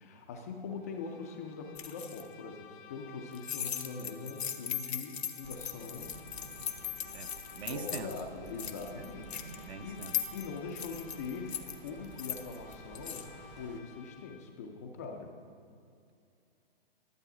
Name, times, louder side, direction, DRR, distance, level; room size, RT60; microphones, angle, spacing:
voice 1, 0.0-6.2 7.7-10.0 10.3-15.3, left 4 dB, 15° left, 3 dB, 0.3 m, -42 dB
Bowed string instrument, 0.7-14.6, left 8 dB, 55° left, 0.7 m, -55 dB
sound 1, 1.7-2.2 3.3-8.2 8.5-9.6 10.0-13.3, left 8 dB, 90° left, 0.8 m, -39 dB
sound 2, 5.4-13.8, right 4 dB, 45° right, 1.1 m, -52 dB
voice 2, 7.1-8.1 8.9-9.1 9.6-10.1, right 7 dB, 80° right, 13 dB, 0.6 m, -43 dB
11.5 x 7.3 x 4.8 m, 2.5 s
hypercardioid pair, 145°, 31 cm